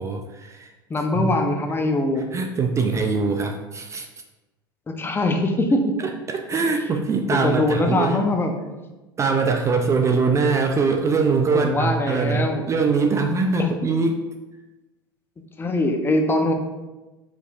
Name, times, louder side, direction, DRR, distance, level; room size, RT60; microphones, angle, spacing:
voice 1, 0.0-0.7 1.1-1.3 2.2-4.1 6.0-8.3 9.2-14.2, right 4 dB, 25° right, 4 dB, 0.4 m, -22 dB
voice 2, 0.9-2.3 5.0-5.8 7.3-8.5 11.5-12.6 13.6-13.7 15.6-16.5, left 2 dB, 20° left, 4 dB, 0.6 m, -22 dB
4.8 x 4.5 x 2.4 m, 1.1 s
hypercardioid pair, 85°, 12 cm